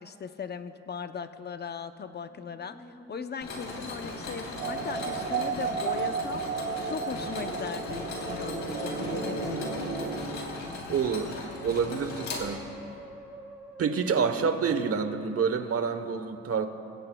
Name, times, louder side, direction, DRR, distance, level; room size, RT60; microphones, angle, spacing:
voice 1, 0.0-6.4 6.8-9.7 14.1-14.5, left 6 dB, 35° left, 9 dB, 0.7 m, -38 dB
Musical instrument, 2.2-15.2, right 1 dB, 5° right, 3.8 m, -49 dB
Mechanisms, 3.4-13.0, left 3 dB, 65° left, 3.4 m, -39 dB
sound 1, 4.6-10.2, right 5 dB, 70° right, 3.6 m, -33 dB
voice 2, 10.9-12.6 13.8-16.7, right 6 dB, 50° right, 8 dB, 1.1 m, -28 dB
26.0 x 16.0 x 2.3 m, 2.7 s
cardioid pair, 90°, 30 cm